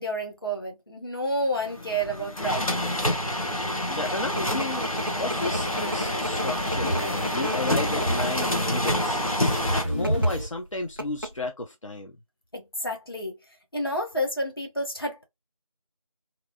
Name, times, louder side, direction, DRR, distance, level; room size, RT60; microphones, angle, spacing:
voice 1, 0.0-3.0 12.5-13.4 13.7-15.2, equal, 40° left, 1.0 m, -30 dB
sound 1, 1.6-9.8, left 1 dB, 80° left, 1.1 m, -28 dB
sound 2, 3.8-9.2 9.9-10.3 10.7-10.8 11.0-11.5, equal, 40° right, 0.4 m, -34 dB
voice 2, 3.9-4.9 5.2-12.1, left 2 dB, 60° left, 0.6 m, -33 dB
sound 3, 5.4-10.4, equal, 20° left, 1.5 m, -31 dB
3.0 x 2.6 x 2.7 m
figure-of-eight pair, 175°, 18 cm